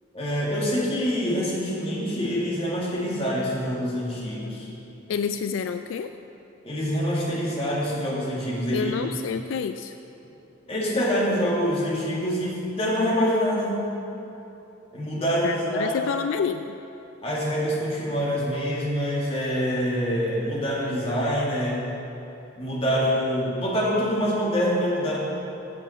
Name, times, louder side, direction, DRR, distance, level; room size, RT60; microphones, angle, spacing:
voice 1, 0.1-4.7 6.6-8.9 10.7-13.8 14.9-15.9 17.2-21.9 22.6-25.2, equal, 30° left, -4 dB, 1.9 m, -25 dB
voice 2, 5.1-6.1 8.7-9.9 15.4-16.8, left 6 dB, 80° left, 9 dB, 0.3 m, -28 dB
8.2 x 7.1 x 6.9 m, 2.9 s
head